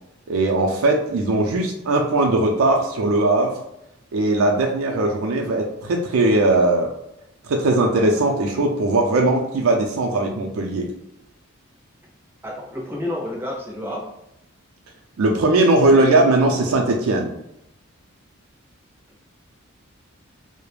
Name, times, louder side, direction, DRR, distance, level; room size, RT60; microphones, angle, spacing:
voice 1, 0.3-3.5 4.1-6.9 7.4-10.9 15.2-17.3, right 2 dB, 85° right, 1 dB, 0.4 m, -19 dB
voice 2, 12.4-14.1, left 1 dB, 10° right, -1 dB, 0.4 m, -30 dB
2.3 x 2.0 x 3.1 m, 0.82 s
head